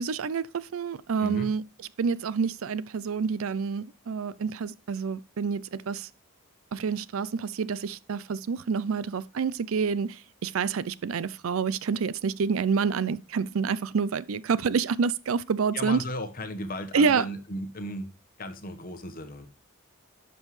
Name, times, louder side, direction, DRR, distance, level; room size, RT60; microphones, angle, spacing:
voice 1, 0.0-1.6 2.0-6.1 6.7-16.0 16.9-17.3, right 5 dB, 85° right, 0.5 m, -28 dB
voice 2, 1.2-1.5 15.7-18.1 18.4-19.5, left 1 dB, 45° left, 1.2 m, -35 dB
11.5 x 5.5 x 3.2 m
head